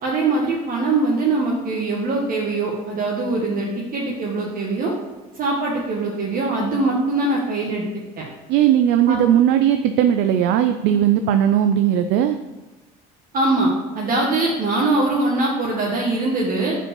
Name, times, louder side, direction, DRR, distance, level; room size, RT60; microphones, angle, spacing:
voice 1, 0.0-4.9 5.3-7.8 8.2-8.3 9.0-9.2 13.3-13.7 13.9-16.8, right 2 dB, 45° right, -2 dB, 1.2 m, -22 dB
voice 2, 8.5-12.4, right 10 dB, 65° right, 8 dB, 0.4 m, -17 dB
5.3 x 4.4 x 6.0 m, 1.1 s
supercardioid pair, 90°, 20 cm